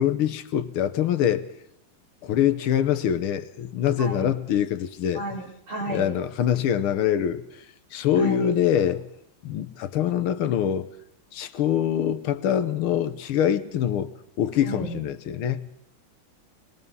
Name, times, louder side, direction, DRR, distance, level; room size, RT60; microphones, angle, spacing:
voice 1, 0.0-1.4 2.2-5.2 5.9-7.4 7.9-9.0 9.4-10.9 11.3-14.1 14.4-15.7, left 9 dB, 85° left, 1.9 m, -24 dB
voice 2, 4.0-4.3 5.1-6.1 8.2-8.6 14.6-15.0, right 1 dB, 75° right, 5.5 m, -32 dB
24.5 x 20.0 x 5.5 m
omnidirectional pair, 2.3 m